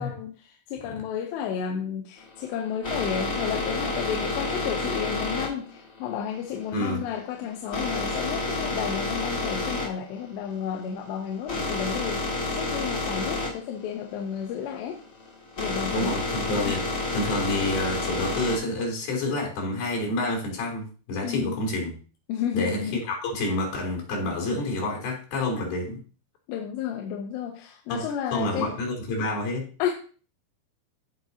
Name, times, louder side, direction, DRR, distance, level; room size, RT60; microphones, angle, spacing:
voice 1, 0.0-15.0 15.6-16.2 16.6-16.8 21.2-21.6 22.3-23.0 26.5-28.7 29.8-29.9, left 8 dB, 75° left, 2 dB, 2.8 m, -32 dB
sound 1, 2.2-18.8, left 2 dB, 40° left, 1.2 m, -30 dB
voice 2, 6.7-7.0 15.9-16.8 17.1-22.0 22.5-26.0 27.9-28.0 28.3-29.7, left 2 dB, 55° left, -1 dB, 5.2 m, -28 dB
15.0 x 6.1 x 2.8 m, 0.38 s
omnidirectional pair, 5.3 m